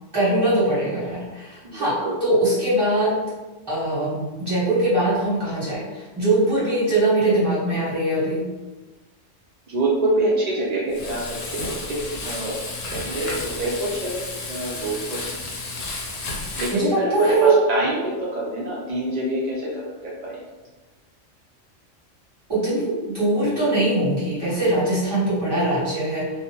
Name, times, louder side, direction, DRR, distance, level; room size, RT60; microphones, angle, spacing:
voice 1, 0.1-3.2 3.7-8.5 16.7-17.6 22.5-26.3, right 2 dB, 20° right, -11 dB, 1.4 m, -22 dB
voice 2, 1.6-2.2 9.7-12.6 12.9-15.2 16.6-20.4, right 1 dB, 60° right, -6 dB, 0.4 m, -26 dB
Frying (food), 10.9-16.8, left 2 dB, 80° left, 1.0 m, -32 dB
2.6 x 2.1 x 2.8 m, 1.2 s
omnidirectional pair, 1.3 m